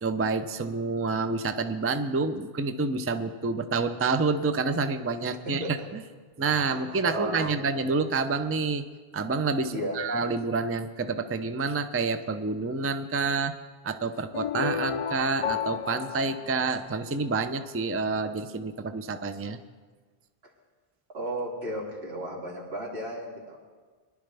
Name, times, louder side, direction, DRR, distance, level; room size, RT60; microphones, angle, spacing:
voice 1, 0.0-6.0 6.4-8.8 9.1-13.5 13.8-19.6, right 4 dB, 20° right, 9 dB, 0.4 m, -28 dB
voice 2, 5.4-5.9 6.5-7.9 9.7-10.0 21.1-23.6, equal, 90° right, -3 dB, 2.8 m, -35 dB
sound 1, 14.3-17.4, left 8 dB, 55° left, 0.4 m, -32 dB
21.5 x 11.0 x 3.4 m, 1.5 s
omnidirectional pair, 1.0 m